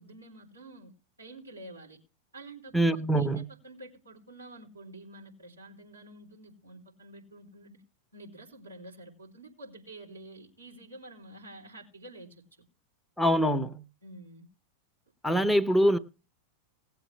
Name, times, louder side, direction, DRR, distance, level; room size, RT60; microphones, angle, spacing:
voice 1, 0.0-2.0 2.3-7.8 8.1-12.4 14.0-14.5, right 2 dB, 85° right, 4.2 m, -49 dB
voice 2, 2.7-3.4 13.2-13.8 15.2-16.0, equal, 5° left, 0.9 m, -24 dB
19.0 x 8.1 x 3.2 m
figure-of-eight pair, 90°, 0 cm